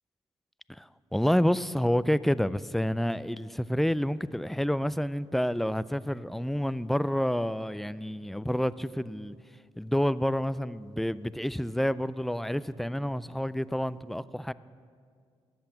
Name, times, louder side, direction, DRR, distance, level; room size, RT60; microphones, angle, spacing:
voice 1, 0.7-9.4 9.8-14.5, equal, ahead, 0.3 m, -29 dB
13.5 x 8.7 x 7.0 m
cardioid pair, 75°, 11 cm